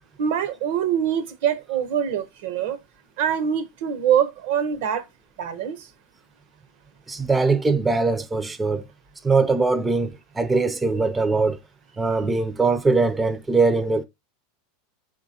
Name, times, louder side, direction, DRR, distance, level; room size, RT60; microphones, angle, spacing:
voice 1, 0.2-2.8 3.2-5.0 5.4-5.9, right 9 dB, 70° right, 0.7 m, -24 dB
voice 2, 7.1-8.8 9.2-11.6 12.0-14.0, right 3 dB, 15° right, 0.4 m, -21 dB
4.6 x 3.7 x 2.7 m
supercardioid pair, 125°, 0 cm